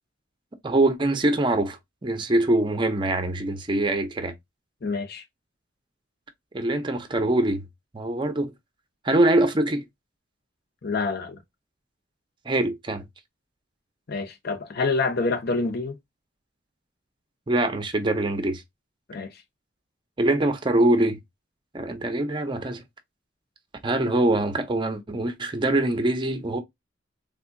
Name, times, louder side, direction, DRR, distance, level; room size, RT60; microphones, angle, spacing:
voice 1, 0.6-4.3 6.5-7.6 7.9-8.5 9.0-9.8 12.5-13.1 17.5-18.6 20.2-21.2 21.7-22.8 23.8-26.6, right 1 dB, 25° right, 0.5 m, -23 dB
voice 2, 4.8-5.2 10.8-11.4 14.1-16.0 19.1-19.4, left 3 dB, 55° left, 0.7 m, -27 dB
3.6 x 2.7 x 2.5 m
head